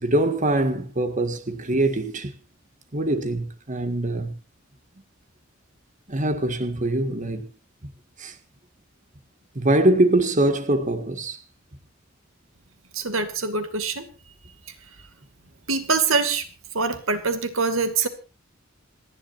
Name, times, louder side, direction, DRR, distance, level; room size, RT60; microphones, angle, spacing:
voice 1, 0.0-2.3 2.9-4.3 6.1-7.5 8.2-8.4 9.6-11.4, right 1 dB, 40° right, 1.7 m, -23 dB
voice 2, 12.9-14.0 15.7-16.4 16.7-18.1, right 4 dB, 90° right, 2.4 m, -24 dB
27.5 x 11.5 x 2.6 m
head